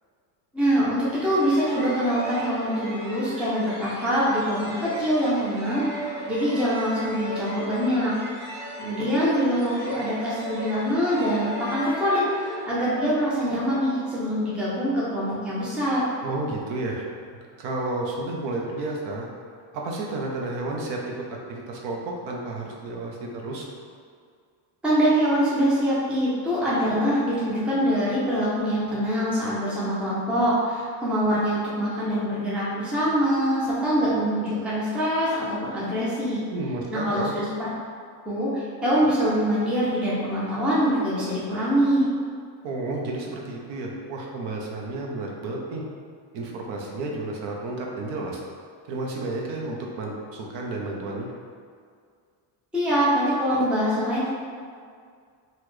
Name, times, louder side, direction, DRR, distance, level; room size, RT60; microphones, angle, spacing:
voice 1, 0.5-5.9 6.3-8.1 8.8-16.0 24.8-36.4 36.9-37.7 38.3-42.1 52.7-54.3, equal, ahead, -8 dB, 0.4 m, -24 dB
sound 1, 1.0-14.5, equal, 20° right, 0.8 m, -37 dB
voice 2, 16.2-17.1 17.6-19.3 19.7-23.7 36.5-37.3 42.6-45.8 46.3-48.4 48.9-51.3, right 2 dB, 60° right, -1 dB, 0.7 m, -31 dB
4.0 x 2.2 x 3.1 m, 2.1 s
cardioid pair, 145°, 48 cm